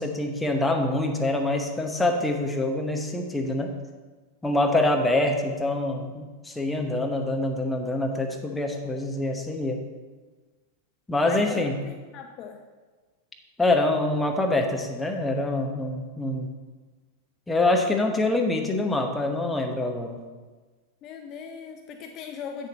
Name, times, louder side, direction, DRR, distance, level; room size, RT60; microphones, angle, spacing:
voice 1, 0.0-3.7 4.4-9.8 11.1-11.8 13.6-16.5 17.5-20.2, left 2 dB, 10° left, 3 dB, 1.0 m, -25 dB
voice 2, 11.3-12.6 21.0-22.7, left 6 dB, 35° left, 5 dB, 0.6 m, -39 dB
8.4 x 6.7 x 4.1 m, 1.3 s
figure-of-eight pair, 90°, 0 cm